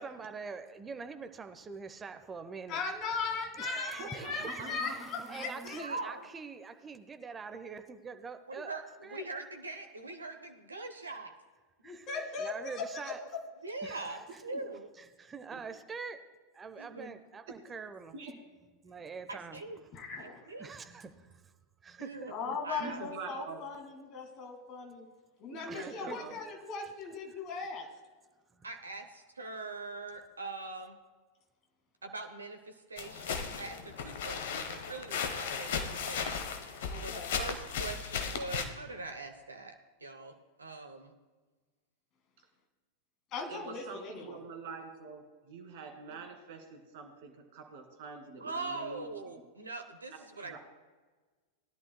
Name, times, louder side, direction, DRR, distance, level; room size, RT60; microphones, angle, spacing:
voice 1, 0.0-2.8 3.6-5.0 5.3-8.7 9.0-9.2 11.8-12.1 12.4-13.2 13.8-14.4 15.0-16.2 16.5-18.2 18.8-19.6 20.6-21.5 21.8-22.6 25.7-26.4 28.5-28.7, right 5 dB, 20° right, 9 dB, 0.8 m, -45 dB
voice 2, 2.7-5.8 11.8-13.3 19.9-20.5 22.3-25.1 25.4-27.9 36.9-37.4 43.3-44.4, left 4 dB, 35° left, 3 dB, 1.9 m, -38 dB
Water / Splash splatter, 3.9-6.0, left 2 dB, 10° left, 1.3 m, -53 dB
voice 3, 4.0-5.7 14.5-14.6 15.5-15.6 17.5-17.6 18.1-18.3 22.8-23.6 25.5-26.3 43.5-49.0 50.4-50.6, right 4 dB, 50° right, 3 dB, 2.2 m, -45 dB
voice 4, 5.6-6.2 8.5-11.3 13.6-14.9 16.8-17.1 19.3-19.8 20.2-20.7 22.0-23.1 28.6-31.0 32.0-39.7 40.0-40.3 40.6-41.1 48.4-50.6, right 3 dB, 75° right, 5 dB, 0.8 m, -42 dB
sound 1, 33.0-38.7, left 6 dB, 55° left, 1.0 m, -36 dB
19.5 x 11.0 x 2.2 m, 1.4 s
figure-of-eight pair, 90°, 0 cm